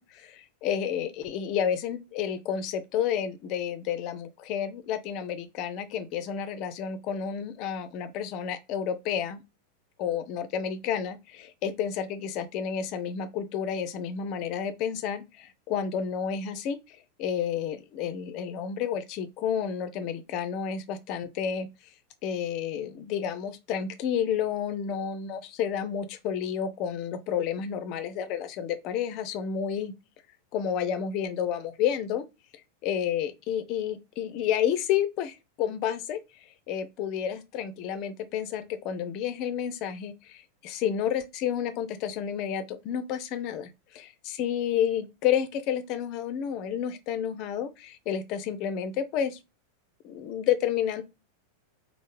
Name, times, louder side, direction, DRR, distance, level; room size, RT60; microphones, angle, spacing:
voice 1, 0.6-9.4 10.0-21.7 22.2-29.9 30.5-32.2 32.8-36.2 36.7-49.4 50.0-51.0, left 8 dB, 40° left, 0.4 m, -30 dB
3.2 x 2.0 x 3.0 m
figure-of-eight pair, 90°, 0 cm